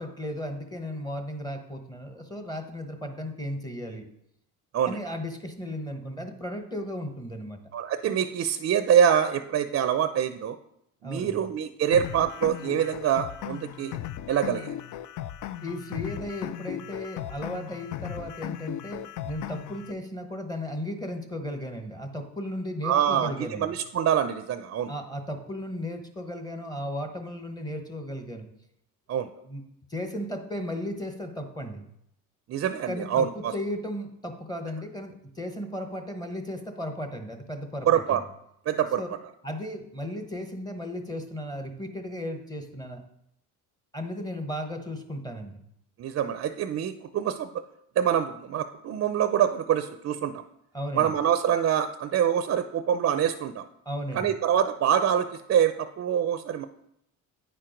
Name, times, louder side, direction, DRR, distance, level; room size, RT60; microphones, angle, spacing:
voice 1, 0.0-4.1 4.9-7.6 11.0-11.5 15.6-23.7 24.9-28.5 29.4-29.6 29.9-31.8 32.8-38.2 39.0-39.1 39.4-43.0 43.9-45.6 50.7-51.2 53.9-54.4, equal, 10° left, 4 dB, 0.9 m, -35 dB
voice 2, 7.7-10.6 11.0-14.0 14.3-14.7 22.8-24.9 29.1-29.3 32.5-33.5 37.9-38.2 38.7-39.0 46.0-47.5 48.0-50.3 50.9-53.6 54.1-56.7, right 9 dB, 45° right, 10 dB, 0.5 m, -25 dB
sound 1, 11.9-19.9, left 12 dB, 65° left, 0.5 m, -37 dB
9.3 x 4.5 x 5.0 m, 0.77 s
cardioid pair, 115°, 33 cm